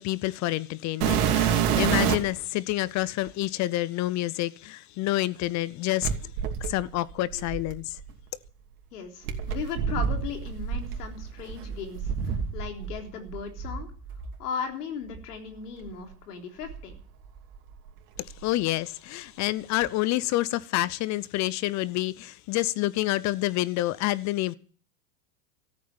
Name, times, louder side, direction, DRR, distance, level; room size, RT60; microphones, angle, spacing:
voice 1, 0.0-6.3 6.6-8.0 18.2-24.5, left 17 dB, 35° left, 0.6 m, -28 dB
sound 1, 1.0-2.4 3.3-3.4 6.0-8.1 9.3-13.0 13.3-14.3 15.1-15.2 15.8-15.9 16.6-17.7 18.0-18.5 19.8-19.9, right 8 dB, 70° right, 2.8 m, -28 dB
voice 2, 8.9-13.9 14.4-16.9, left 6 dB, 75° left, 3.6 m, -37 dB
14.0 x 8.3 x 9.0 m
hypercardioid pair, 105°, 46 cm